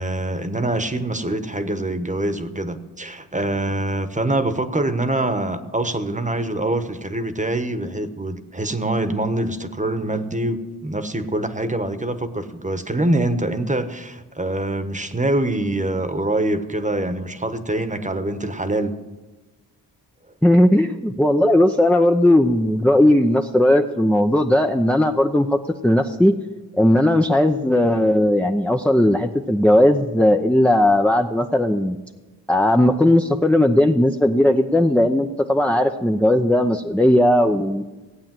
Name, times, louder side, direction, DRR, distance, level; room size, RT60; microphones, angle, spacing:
voice 1, 0.0-18.9, right 1 dB, 20° right, 10 dB, 1.3 m, -24 dB
voice 2, 20.4-26.3 26.8-32.0 32.5-37.8, left 1 dB, 5° left, 3 dB, 0.7 m, -17 dB
16.5 x 8.6 x 7.6 m, 1.2 s
cardioid pair, 50°, 42 cm